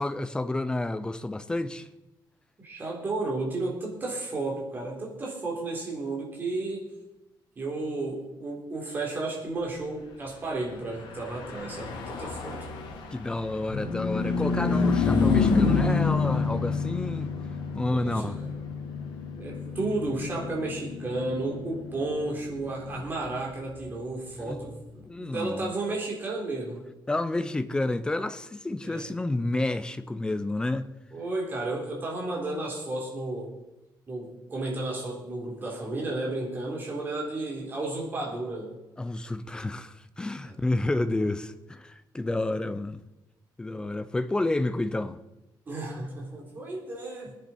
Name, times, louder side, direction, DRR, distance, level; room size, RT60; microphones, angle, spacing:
voice 1, 0.0-1.9 13.1-17.3 17.7-18.3 24.4-24.7 25.0-25.7 27.1-30.9 39.0-43.0 43.6-45.2, left 2 dB, 10° left, 0.6 m, -30 dB
voice 2, 2.6-6.9 7.6-12.7 17.9-18.5 19.4-26.8 28.8-29.1 31.1-33.6 34.1-38.8 40.5-40.6 45.7-47.4, right 2 dB, 25° right, 3.6 m, -33 dB
Car passing by / Truck, 10.9-24.6, left 4 dB, 75° left, 2.6 m, -29 dB
19.5 x 10.5 x 4.4 m
cardioid pair, 175°, 8 cm